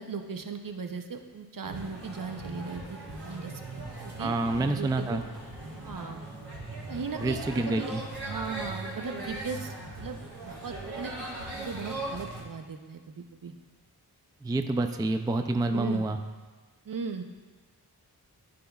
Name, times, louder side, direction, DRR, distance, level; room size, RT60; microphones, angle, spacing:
voice 1, 0.0-5.2 5.8-6.2 6.9-7.4 7.7-8.0 8.2-10.2 10.4-11.1 11.6-13.5 15.7-16.0 16.9-17.2, right 5 dB, 60° right, 6 dB, 0.6 m, -38 dB
sound 1, 1.6-12.4, right 2 dB, 85° right, 1.4 m, -39 dB
voice 2, 4.2-5.2 7.2-8.0 14.4-16.2, right 2 dB, 10° right, 7 dB, 0.3 m, -28 dB
12.0 x 5.1 x 2.3 m, 1.3 s
wide cardioid pair, 65°, 38 cm